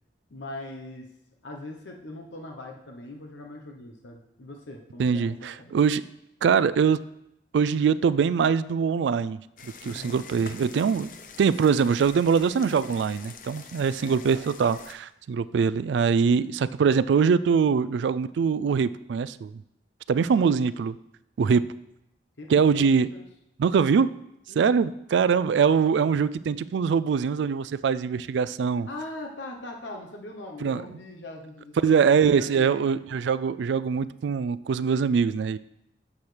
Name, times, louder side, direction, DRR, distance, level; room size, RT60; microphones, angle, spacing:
voice 1, 0.3-1.1 1.4-5.7 9.8-10.2 14.0-14.4 20.3-20.5 22.4-23.2 24.5-24.8 28.9-32.9, left 2 dB, 85° left, 2 dB, 0.9 m, -41 dB
voice 2, 5.0-6.1 6.4-7.0 7.5-9.4 9.8-11.1 11.4-19.5 20.1-21.0 21.4-21.7 22.5-23.1 23.6-24.1 24.6-28.9 30.6-30.8 31.8-35.6, right 6 dB, 80° right, 16 dB, 0.3 m, -23 dB
sound 1, 9.6-14.9, left 6 dB, 45° left, 0.6 m, -46 dB
10.5 x 7.2 x 3.3 m, 0.83 s
head